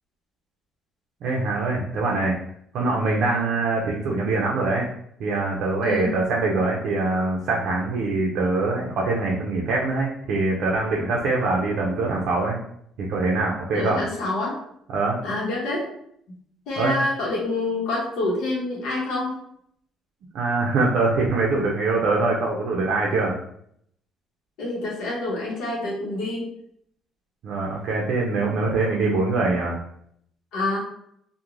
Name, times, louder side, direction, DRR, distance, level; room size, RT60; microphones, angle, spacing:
voice 1, 1.2-2.4 2.7-4.9 5.2-12.6 13.0-14.0 14.9-15.2 16.8-17.0 20.3-23.3 27.4-29.8, right 3 dB, 60° right, -2 dB, 0.4 m, -23 dB
voice 2, 13.7-14.6 15.2-15.9 16.3-16.4 16.7-19.3 24.6-26.5 30.5-30.8, left 2 dB, 80° left, -4 dB, 0.8 m, -27 dB
2.4 x 2.1 x 3.0 m, 0.70 s
cardioid pair, 155°, 0 cm